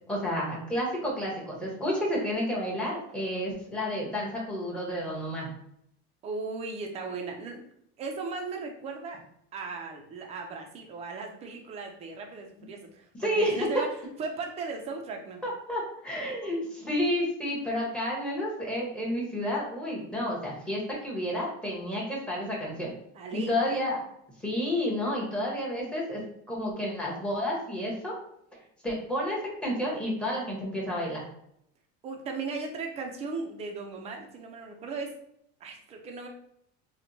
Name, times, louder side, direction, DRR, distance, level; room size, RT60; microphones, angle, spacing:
voice 1, 0.1-5.5 13.2-13.7 15.4-22.9 23.3-24.0 24.4-26.2 26.5-28.2 28.8-31.2, left 1 dB, 5° left, -4 dB, 0.8 m, -30 dB
voice 2, 6.2-7.6 8.0-9.2 9.5-13.9 14.2-15.4 23.1-23.6 32.0-35.2 35.6-36.3, right 4 dB, 20° right, 3 dB, 0.4 m, -37 dB
4.3 x 2.1 x 2.6 m, 0.73 s
cardioid pair, 165°, 32 cm